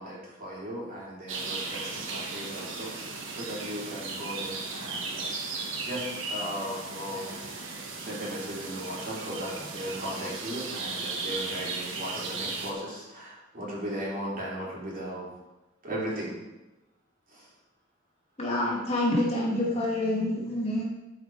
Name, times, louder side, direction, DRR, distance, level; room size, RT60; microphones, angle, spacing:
voice 1, 0.0-7.4 8.0-15.3 15.8-16.4 17.3-17.5, equal, 45° right, -4 dB, 3.0 m, -37 dB
sound 1, 1.3-12.7, right 3 dB, 75° right, 1.2 m, -36 dB
voice 2, 18.4-20.8, left 1 dB, 35° left, -4 dB, 2.1 m, -27 dB
11.5 x 5.0 x 4.6 m, 1.1 s
head